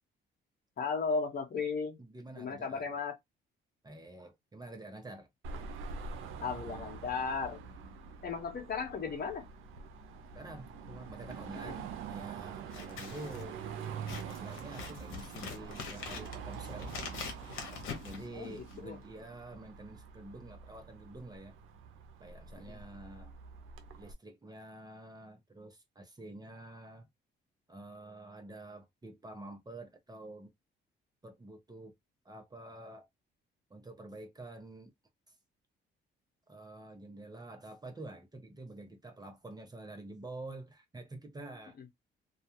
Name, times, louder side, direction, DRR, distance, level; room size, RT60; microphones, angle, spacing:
voice 1, 0.8-2.0 2.3-3.2 6.4-7.6 8.2-9.4 11.6-11.8 18.3-19.0 22.6-22.8, left 5 dB, 50° left, 1.0 m, -35 dB
voice 2, 2.0-2.9 3.8-5.3 7.8-7.9 10.3-13.6 14.1-16.9 18.0-21.6 22.2-23.4 23.9-27.1 27.7-30.5 31.2-31.9 32.2-33.1 33.7-34.9 36.5-41.8, right 2 dB, 20° right, 0.7 m, -48 dB
Car passing by / Traffic noise roadway noise / Engine, 5.4-24.1, right 6 dB, 85° right, 0.5 m, -45 dB
Scissors, 12.6-18.9, left 5 dB, 85° left, 0.8 m, -44 dB
2.3 x 2.2 x 2.8 m
cardioid pair, 90°, 20 cm